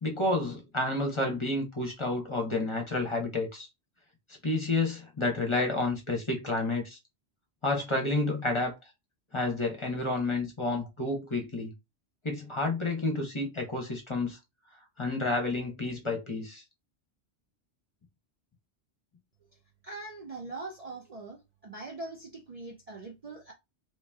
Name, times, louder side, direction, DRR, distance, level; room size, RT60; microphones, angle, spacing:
voice 1, 0.0-3.7 4.4-7.0 7.6-8.8 9.3-11.7 12.2-14.4 15.0-16.6, left 2 dB, 30° left, 1.0 m, -30 dB
voice 2, 19.8-23.5, right 3 dB, 40° right, 0.6 m, -42 dB
3.1 x 3.0 x 3.4 m
omnidirectional pair, 1.1 m